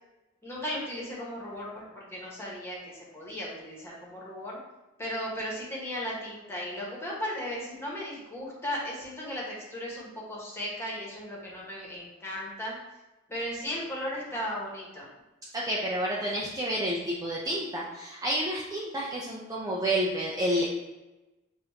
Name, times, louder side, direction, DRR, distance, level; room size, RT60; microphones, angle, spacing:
voice 1, 0.4-4.6 5.0-12.8 13.3-15.1, equal, 10° left, -5 dB, 1.4 m, -36 dB
voice 2, 15.5-20.7, right 1 dB, 15° right, -5 dB, 0.5 m, -29 dB
6.9 x 2.6 x 2.8 m, 1.1 s
head